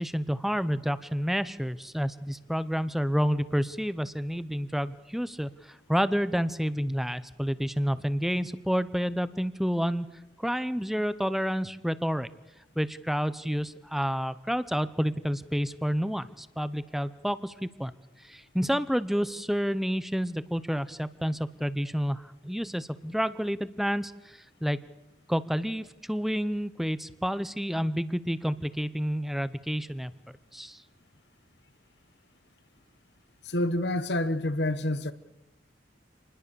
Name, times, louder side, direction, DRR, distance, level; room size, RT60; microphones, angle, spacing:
voice 1, 0.0-5.5 5.9-10.1 10.4-12.3 12.8-17.9 18.2-24.8 25.3-30.1 30.5-30.8, equal, ahead, 0.8 m, -29 dB
voice 2, 33.4-35.1, left 1 dB, 65° left, 1.2 m, -28 dB
27.5 x 20.5 x 7.0 m
head